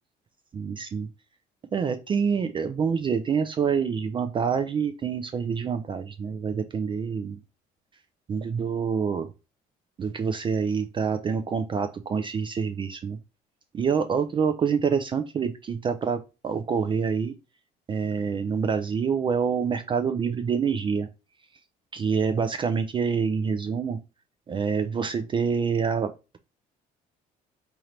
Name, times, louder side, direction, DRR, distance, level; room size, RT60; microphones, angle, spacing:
voice 1, 0.5-1.1 1.7-7.4 8.3-9.3 10.0-13.2 13.7-17.3 17.9-21.1 21.9-24.0 24.5-26.4, right 6 dB, 30° right, 7 dB, 0.3 m, -26 dB
3.8 x 2.9 x 3.1 m, 0.29 s
cardioid pair, 110°, 17 cm